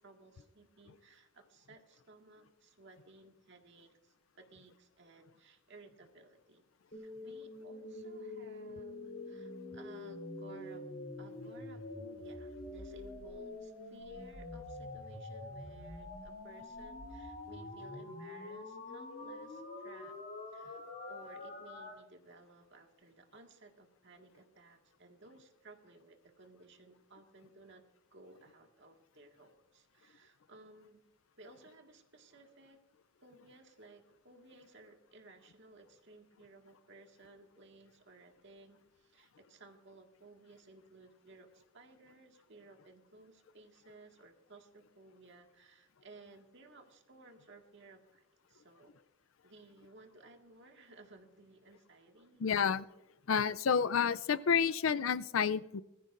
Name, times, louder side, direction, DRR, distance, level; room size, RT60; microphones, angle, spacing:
voice 1, 0.0-6.6 6.9-10.9 11.2-20.2 20.5-20.8 21.1-27.8 28.1-31.0 31.4-32.8 33.2-49.0 49.4-52.5, right 3 dB, 65° right, 3 dB, 1.9 m, -58 dB
sound 1, 6.9-21.9, left 2 dB, 50° left, 3.6 m, -46 dB
voice 2, 52.4-52.9 53.3-55.8, left 6 dB, 90° left, 16 dB, 0.5 m, -30 dB
20.0 x 15.0 x 2.6 m, 0.99 s
head